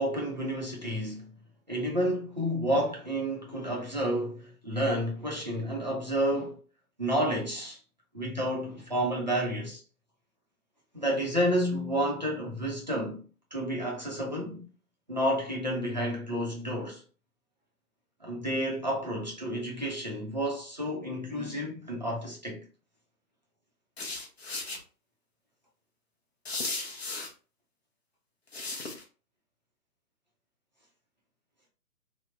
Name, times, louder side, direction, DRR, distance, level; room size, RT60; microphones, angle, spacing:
voice 1, 0.0-1.3 1.7-6.6 7.0-7.8 8.1-9.8 10.9-13.2 13.5-14.6 15.1-17.0 18.2-22.6, equal, 30° right, 0.5 m, -30 dB
sound 1, 24.0-24.8 26.5-27.3 28.5-29.0, left 3 dB, 45° left, 0.5 m, -35 dB
3.1 x 2.0 x 2.5 m
figure-of-eight pair, 150°, 46 cm